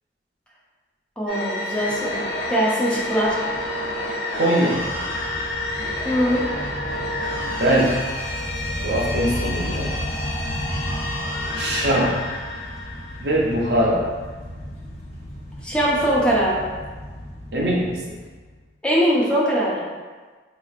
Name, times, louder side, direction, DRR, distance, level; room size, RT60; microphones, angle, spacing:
voice 1, 1.2-2.2 2.5-3.4 6.0-6.4 15.6-16.7 18.8-19.9, equal, 5° left, -6 dB, 0.5 m, -21 dB
sound 1, 1.3-13.8, left 1 dB, 60° left, 0.7 m, -29 dB
voice 2, 4.4-4.8 7.4-8.1 8.8-10.0 11.5-12.2 13.2-14.0 17.5-18.0, right 1 dB, 65° right, -4 dB, 0.7 m, -21 dB
sound 2, 4.7-18.5, equal, 35° left, 0.9 m, -34 dB
4.2 x 2.9 x 2.4 m, 1.4 s
head